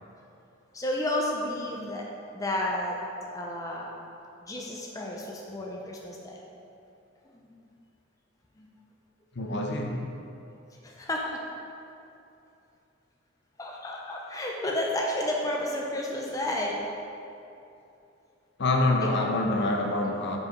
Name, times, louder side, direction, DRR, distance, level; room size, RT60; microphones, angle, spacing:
voice 1, 0.7-2.0 2.3-3.0 3.3-3.9 4.4-6.4 7.5-7.6 8.6-8.7 10.8-11.4 13.6-16.8 19.0-19.1, left 1 dB, 15° left, -2 dB, 0.5 m, -31 dB
voice 2, 9.3-10.0 18.6-20.4, left 2 dB, 60° left, 1 dB, 0.7 m, -26 dB
4.9 x 4.8 x 4.6 m, 2.7 s
head